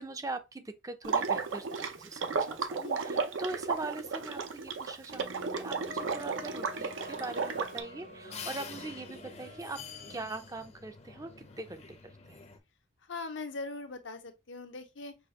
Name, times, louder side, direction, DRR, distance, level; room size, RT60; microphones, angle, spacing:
voice 1, 0.0-9.8 10.1-12.4, right 2 dB, 20° right, 0.4 m, -42 dB
Water / Liquid, 1.0-7.8, right 5 dB, 80° right, 0.6 m, -33 dB
voice 2, 2.8-3.2 13.1-15.2, left 3 dB, 70° left, 0.8 m, -41 dB
sound 1, 5.1-10.2, left 1 dB, 45° right, 0.8 m, -49 dB
sound 2, 5.9-12.6, left 5 dB, 35° left, 0.6 m, -48 dB
6.1 x 2.4 x 2.9 m
head